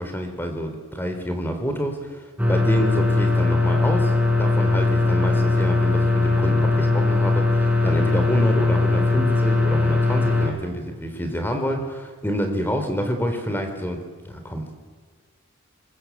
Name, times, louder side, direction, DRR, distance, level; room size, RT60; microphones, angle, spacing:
voice 1, 0.0-2.1 2.5-4.1 4.4-14.7, equal, 10° left, 5 dB, 3.8 m, -27 dB
sound 1, 2.4-10.5, left 3 dB, 5° right, 3.7 m, -20 dB
25.5 x 22.5 x 8.5 m, 1.5 s
head